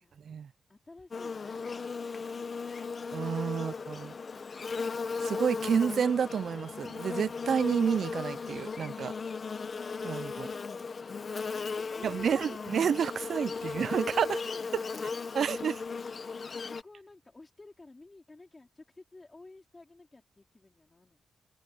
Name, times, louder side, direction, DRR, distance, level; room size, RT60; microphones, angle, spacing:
voice 1, 0.7-2.7 3.5-4.9 10.1-12.6 13.2-15.1 16.5-21.4, left 2 dB, 20° left, 4.1 m, -54 dB
Buzz, 1.1-16.8, left 4 dB, 35° left, 0.9 m, -37 dB
voice 2, 3.1-4.1 5.2-9.1 10.0-10.5 12.0-14.4 15.4-15.8, right 7 dB, 55° right, 0.3 m, -29 dB
wide cardioid pair, 160°, 0 cm